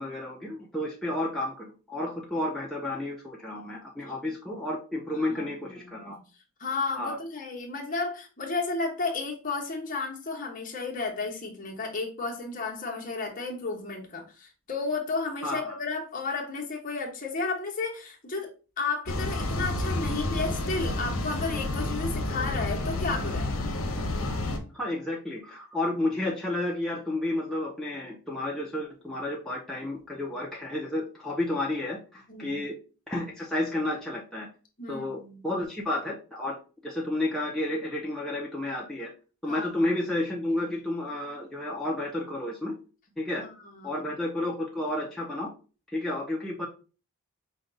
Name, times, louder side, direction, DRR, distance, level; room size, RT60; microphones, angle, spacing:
voice 1, 0.0-6.2 6.9-7.2 15.4-15.8 24.1-24.3 24.7-32.7 33.1-34.5 34.9-36.5 36.8-39.1 39.4-42.7 43.2-43.4 43.8-45.5 45.9-46.7, left 1 dB, ahead, -4 dB, 0.5 m, -31 dB
voice 2, 5.3-6.2 6.6-18.5 18.8-23.5 32.3-32.6 34.8-35.4 39.5-39.7 43.4-44.1, left 3 dB, 35° left, 0 dB, 1.0 m, -33 dB
sound 1, 19.1-24.6, left 2 dB, 70° left, 0.9 m, -30 dB
5.1 x 2.3 x 3.8 m, 0.35 s
head